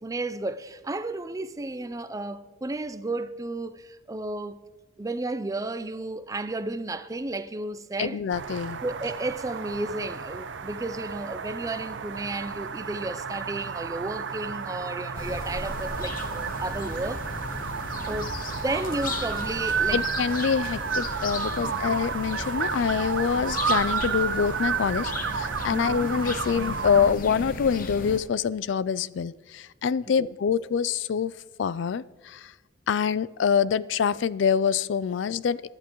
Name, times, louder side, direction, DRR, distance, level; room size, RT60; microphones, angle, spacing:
voice 1, 0.0-4.6 5.0-8.2 8.8-17.2 18.1-20.0 21.6-21.8 25.7-26.1 30.2-30.3, right 2 dB, 15° right, 0.4 m, -33 dB
voice 2, 8.0-8.8 19.9-31.3 31.6-32.5 32.9-35.6, left 7 dB, 70° left, 0.3 m, -25 dB
sound 1, 8.3-27.1, right 6 dB, 70° right, 0.5 m, -32 dB
sound 2, 15.1-28.2, left 3 dB, 45° left, 0.9 m, -36 dB
22.5 x 10.5 x 3.0 m
head